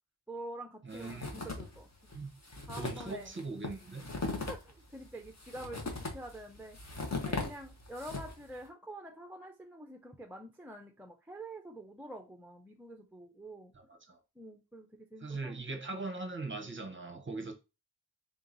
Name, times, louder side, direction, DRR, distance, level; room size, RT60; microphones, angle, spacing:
voice 1, 0.3-1.9 2.7-3.3 4.3-6.8 7.1-13.7 14.4-15.6, right 1 dB, 5° right, 0.5 m, -47 dB
voice 2, 0.8-1.4 2.1-2.3 2.8-4.1 13.8-14.2 15.2-17.5, right 3 dB, 25° right, 0.9 m, -40 dB
sound 1, 0.9-1.8 2.1-2.2 2.4-8.5, left 3 dB, 40° left, 1.0 m, -39 dB
3.6 x 2.9 x 3.8 m
wide cardioid pair, 105°, 44 cm